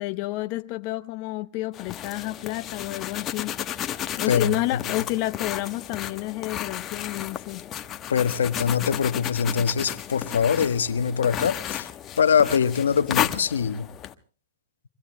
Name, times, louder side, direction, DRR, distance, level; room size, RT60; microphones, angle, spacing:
voice 1, 0.0-3.5 4.2-7.7, left 18 dB, 45° left, 0.7 m, -30 dB
sound 1, 1.7-14.1, left 11 dB, 30° left, 1.1 m, -33 dB
voice 2, 8.1-11.9 12.2-13.9, left 7 dB, 85° left, 1.2 m, -23 dB
25.5 x 24.0 x 2.2 m
hypercardioid pair, 115°, 0 cm